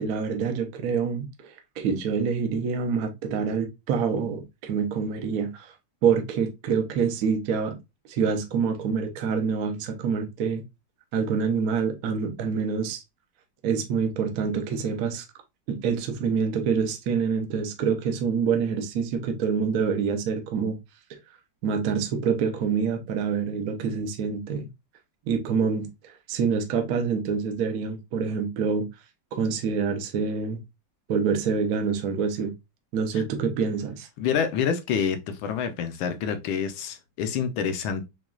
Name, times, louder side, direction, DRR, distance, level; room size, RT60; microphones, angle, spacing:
voice 1, 0.0-5.7 6.0-7.8 8.0-10.6 11.1-13.0 13.6-15.2 15.7-20.8 21.1-21.2 21.6-24.7 25.3-28.9 29.3-30.6 31.1-32.5 32.9-34.1, right 6 dB, 65° right, 0.9 m, -26 dB
voice 2, 34.2-38.1, left 7 dB, 75° left, 1.3 m, -27 dB
6.0 x 2.3 x 2.3 m
omnidirectional pair, 2.4 m